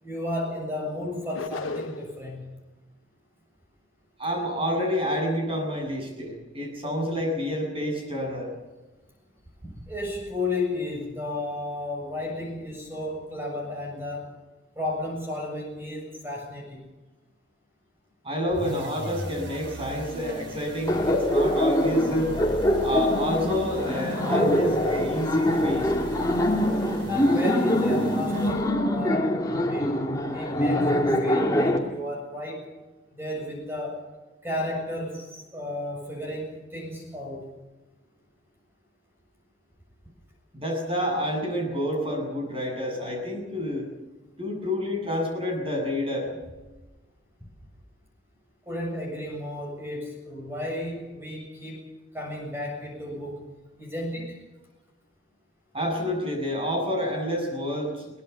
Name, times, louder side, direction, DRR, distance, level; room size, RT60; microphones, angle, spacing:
voice 1, 0.0-2.5 9.6-14.3 14.8-16.9 27.1-29.4 29.6-30.0 30.3-32.7 33.1-34.1 34.4-37.6 48.7-51.8 52.1-53.5 53.8-54.4, left 1 dB, 10° right, 0 dB, 7.4 m, -33 dB
sound 1, 1.3-2.2, left 3 dB, 85° left, 1.1 m, -35 dB
voice 2, 4.2-8.5 18.2-22.3 22.8-25.9 40.5-43.9 44.4-46.3 55.7-58.2, equal, 30° right, 1 dB, 8.0 m, -28 dB
sound 2, 18.5-28.9, equal, 60° right, 4.7 m, -39 dB
Laughter, 20.9-31.8, left 1 dB, 20° left, 2.5 m, -24 dB
23.0 x 19.0 x 7.1 m, 1.1 s
head